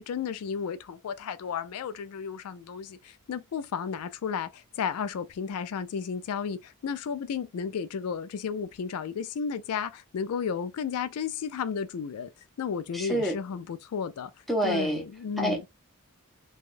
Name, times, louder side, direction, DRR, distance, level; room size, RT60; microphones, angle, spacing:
voice 1, 0.0-12.3 12.6-14.3 14.6-15.6, left 6 dB, 80° left, 0.4 m, -33 dB
voice 2, 12.9-13.3 14.5-15.0 15.4-15.7, right 1 dB, ahead, 0.7 m, -27 dB
3.3 x 2.3 x 2.5 m
head